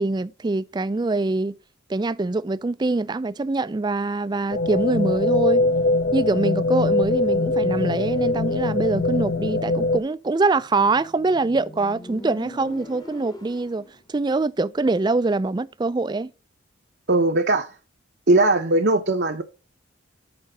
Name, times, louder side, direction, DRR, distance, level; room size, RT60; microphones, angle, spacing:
voice 1, 0.0-1.5 1.9-5.6 6.1-16.3, right 3 dB, 20° right, 0.3 m, -24 dB
sound 1, 4.5-10.0, left 2 dB, 55° left, 0.7 m, -22 dB
Motorcycle, 10.5-14.0, left 1 dB, 20° left, 0.9 m, -42 dB
voice 2, 17.1-17.7 18.3-19.4, right 2 dB, 50° right, 0.7 m, -19 dB
9.0 x 5.1 x 5.1 m
head